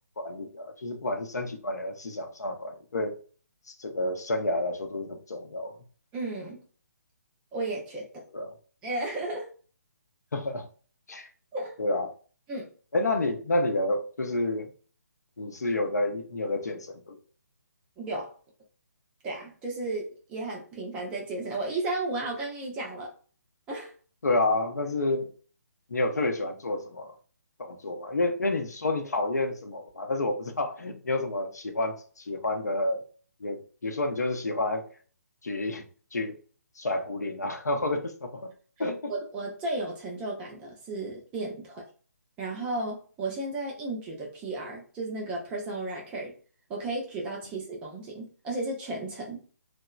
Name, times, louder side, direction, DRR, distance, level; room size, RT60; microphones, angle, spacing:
voice 1, 0.2-3.2 3.7-5.8 8.3-8.5 10.3-10.7 11.1-11.3 11.8-12.1 12.9-14.7 15.4-17.2 24.2-25.3 25.9-27.1 27.6-33.0 33.4-34.9 35.4-35.8 36.1-36.4 36.8-38.5 38.8-39.1, left 2 dB, 70° left, 5 dB, 0.6 m, -29 dB
voice 2, 6.1-6.6 7.5-8.2 8.8-9.5 11.5-11.7 12.5-12.7 18.0-18.3 19.2-23.1 23.7-23.9 39.1-41.9 42.4-46.3 46.7-49.4, right 2 dB, 10° right, -2 dB, 0.5 m, -34 dB
2.9 x 2.0 x 2.3 m, 0.40 s
figure-of-eight pair, 140°, 9 cm